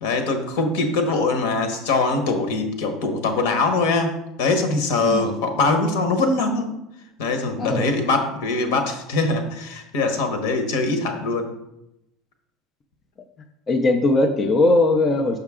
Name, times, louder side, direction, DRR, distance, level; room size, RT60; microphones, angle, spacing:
voice 1, 0.0-6.8 7.2-11.5, left 3 dB, 75° left, 6 dB, 1.2 m, -22 dB
voice 2, 13.7-15.4, left 2 dB, 20° left, 4 dB, 0.4 m, -19 dB
6.5 x 5.6 x 3.6 m, 0.86 s
cardioid pair, 175°, 0 cm